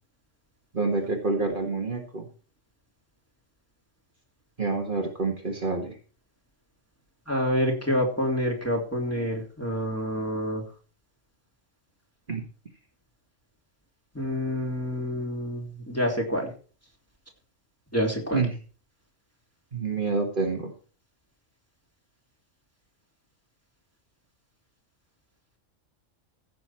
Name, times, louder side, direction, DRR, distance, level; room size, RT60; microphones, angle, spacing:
voice 1, 0.7-2.3 4.6-6.0 12.3-12.4 18.3-18.6 19.7-20.7, right 3 dB, 40° right, 1 dB, 1.9 m, -27 dB
voice 2, 7.3-10.6 14.1-16.5 17.9-18.4, equal, 10° left, -1 dB, 3.2 m, -27 dB
15.5 x 6.8 x 4.4 m, 0.39 s
omnidirectional pair, 1.3 m